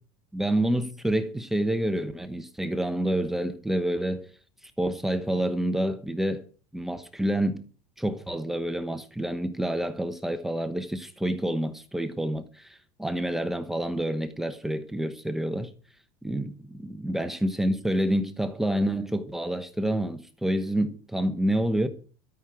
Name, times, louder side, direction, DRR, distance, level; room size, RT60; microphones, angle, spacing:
voice 1, 0.3-4.3 4.8-6.4 6.7-7.7 8.0-15.7 16.2-16.5 16.8-21.9, right 1 dB, 5° right, 1.0 m, -28 dB
13.0 x 6.4 x 8.9 m
supercardioid pair, 140°, 10 cm